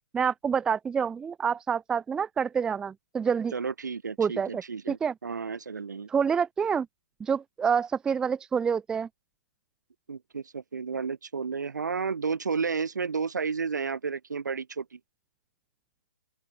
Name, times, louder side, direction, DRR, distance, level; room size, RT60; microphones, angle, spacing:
voice 1, 0.1-3.5 4.2-4.6 4.9-5.1 6.1-6.9 7.2-9.1, right 6 dB, 5° right, 0.7 m, -27 dB
voice 2, 3.5-6.1 10.1-15.0, right 5 dB, 75° right, 6.7 m, -32 dB
open air
hypercardioid pair, 150°, 10 cm